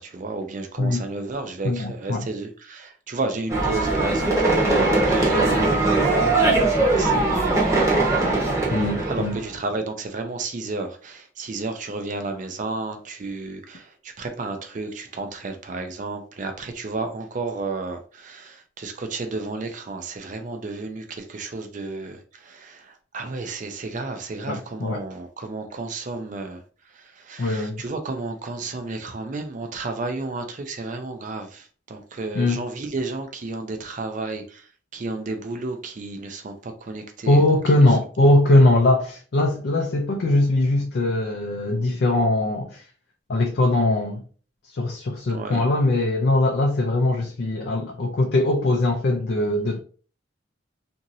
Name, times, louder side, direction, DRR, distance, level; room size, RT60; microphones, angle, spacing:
voice 1, 0.0-8.7 9.0-37.6 45.3-45.6, right 3 dB, 40° right, 0.4 m, -32 dB
voice 2, 1.6-2.2 8.7-9.4 24.5-25.0 27.4-27.8 32.3-32.6 37.3-42.8 43.3-44.2 44.7-49.8, left 2 dB, 55° left, 0.4 m, -21 dB
sound 1, 3.5-9.6, right 2 dB, 15° right, 0.8 m, -20 dB
2.9 x 2.6 x 2.6 m
head